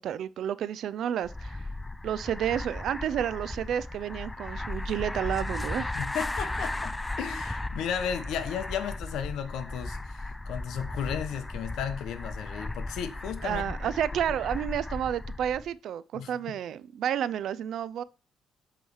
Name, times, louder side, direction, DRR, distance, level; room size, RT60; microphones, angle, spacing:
voice 1, 0.0-1.7 2.0-5.9 13.4-18.0, right 10 dB, 70° right, 0.3 m, -31 dB
sound 1, 1.2-15.7, left 2 dB, 15° left, 0.3 m, -36 dB
voice 2, 5.9-13.7 16.1-16.3, left 8 dB, 85° left, 0.7 m, -34 dB
7.8 x 3.1 x 4.7 m
cardioid pair, 90°, 0 cm